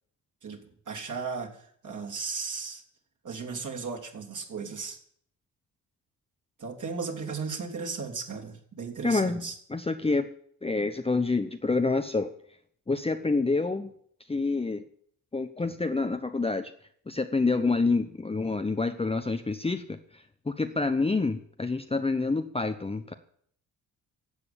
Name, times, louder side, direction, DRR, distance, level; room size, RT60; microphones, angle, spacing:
voice 1, 0.4-2.8 3.2-5.0 6.6-9.5, right 5 dB, 40° right, 2 dB, 3.2 m, -36 dB
voice 2, 9.0-10.3 10.6-12.3 12.9-13.9 14.3-14.8 15.3-16.7 17.1-23.1, left 3 dB, 15° left, 7 dB, 0.9 m, -27 dB
15.5 x 8.2 x 8.8 m, 0.64 s
figure-of-eight pair, 45°, 46 cm